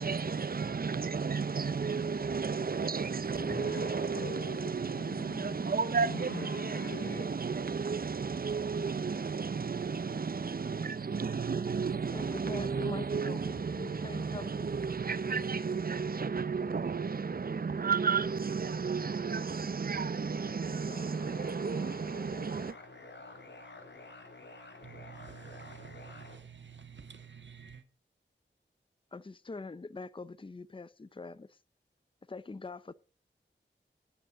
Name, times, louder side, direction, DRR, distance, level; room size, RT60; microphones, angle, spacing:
voice 1, 0.0-22.7, right 5 dB, 50° right, 0.6 m, -33 dB
sound 1, 3.4-7.3, left 3 dB, 90° left, 2.5 m, -43 dB
voice 2, 12.1-14.7 29.1-31.5 32.3-32.9, left 3 dB, 25° left, 0.6 m, -43 dB
sound 2, 20.2-26.4, left 2 dB, 65° left, 3.0 m, -50 dB
voice 3, 24.8-27.8, right 7 dB, 65° right, 1.8 m, -50 dB
10.0 x 9.0 x 5.0 m
wide cardioid pair, 60°, 20 cm